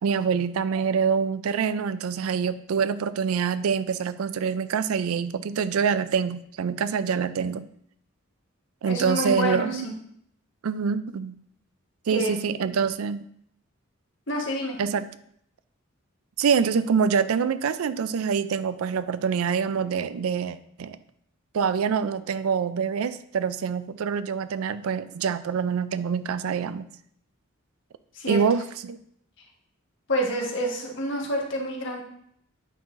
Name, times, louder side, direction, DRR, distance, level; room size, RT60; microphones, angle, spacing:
voice 1, 0.0-7.6 8.8-9.9 10.6-11.3 12.1-13.3 14.8-15.1 16.4-21.0 21.5-26.8 28.3-29.0, right 6 dB, 90° right, 14 dB, 0.4 m, -25 dB
voice 2, 8.9-9.9 12.1-12.3 14.3-14.8 28.1-28.4 30.1-32.0, equal, 60° left, -1 dB, 1.5 m, -28 dB
8.4 x 5.6 x 2.5 m, 0.69 s
head